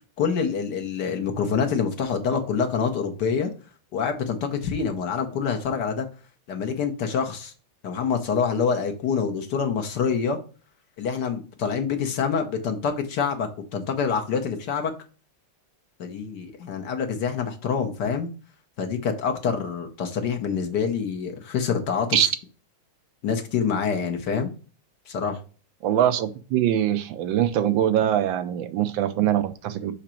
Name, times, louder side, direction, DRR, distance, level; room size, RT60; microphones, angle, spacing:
voice 1, 0.2-3.5 3.9-6.1 6.5-7.5 7.8-10.4 11.0-14.9 16.0-18.3 18.8-22.2 23.2-24.5 25.1-25.4, left 6 dB, 60° left, 1.4 m, -26 dB
voice 2, 25.8-29.9, right 11 dB, 75° right, 1.3 m, -23 dB
5.8 x 5.1 x 4.4 m
omnidirectional pair, 2.2 m